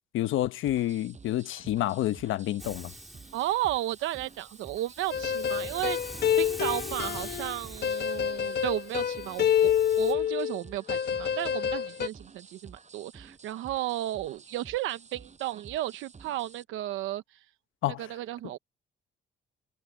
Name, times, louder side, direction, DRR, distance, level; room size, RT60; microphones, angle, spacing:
voice 1, 0.1-2.9 17.8-18.0, left 13 dB, 85° left, 1.1 m, -29 dB
sound 1, 0.6-16.6, right 5 dB, 35° right, 5.6 m, -52 dB
Hiss, 2.6-10.1, equal, ahead, 2.8 m, -45 dB
voice 2, 3.3-6.0 6.4-17.2 18.0-18.6, right 14 dB, 90° right, 0.9 m, -33 dB
sound 2, 5.1-10.6 10.9-12.1, left 9 dB, 55° left, 1.3 m, -27 dB
cardioid pair, 90°, 20 cm